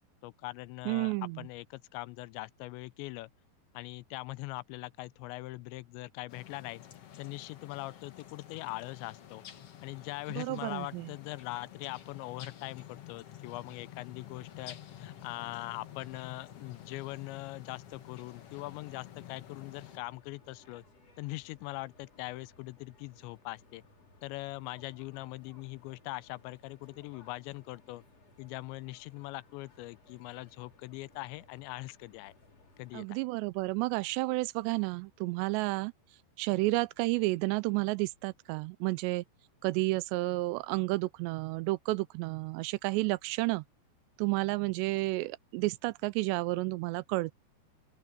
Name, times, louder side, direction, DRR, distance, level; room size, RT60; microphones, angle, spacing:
voice 1, 0.2-3.3 3.7-6.8 7.2-9.4 9.8-20.8 21.2-23.8 24.2-28.0 28.4-32.3 32.8-33.2, left 20 dB, 85° left, 2.9 m, -42 dB
voice 2, 0.9-1.5 10.3-11.1 32.9-35.9 36.4-39.2 39.6-43.6 44.2-47.3, right 22 dB, 85° right, 2.6 m, -31 dB
sound 1, 6.3-20.0, left 11 dB, 65° left, 1.5 m, -50 dB
sound 2, 14.3-32.9, left 3 dB, 35° left, 5.2 m, -62 dB
open air
omnidirectional pair, 5.1 m